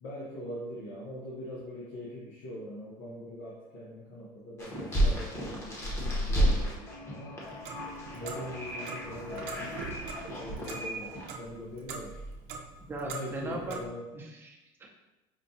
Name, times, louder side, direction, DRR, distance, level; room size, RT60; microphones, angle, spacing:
voice 1, 0.0-7.4 8.1-9.8 10.4-12.3 13.0-14.1, left 1 dB, 80° left, -6 dB, 0.9 m, -42 dB
sound 1, 4.6-11.3, equal, 25° left, 0.9 m, -32 dB
Clock, 7.4-13.9, right 4 dB, 80° right, 0.6 m, -43 dB
voice 2, 12.9-13.8 14.1-14.9, right 2 dB, 20° right, -1 dB, 0.6 m, -39 dB
5.0 x 2.3 x 2.7 m, 1.0 s
cardioid pair, 135°, 12 cm